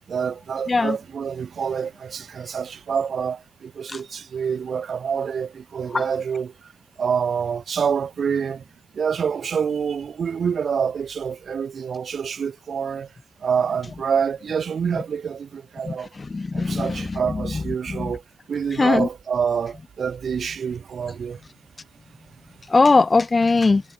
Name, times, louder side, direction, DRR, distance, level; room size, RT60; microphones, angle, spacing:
voice 1, 0.1-6.7 7.0-8.6 8.9-13.1 13.4-16.1 16.5-18.2 18.5-21.4, right 7 dB, 60° right, 2.1 m, -27 dB
voice 2, 16.3-17.1 17.9-18.0 18.8-19.1 22.7-23.8, left 3 dB, 30° left, 0.5 m, -19 dB
cardioid pair, 75°, 0 cm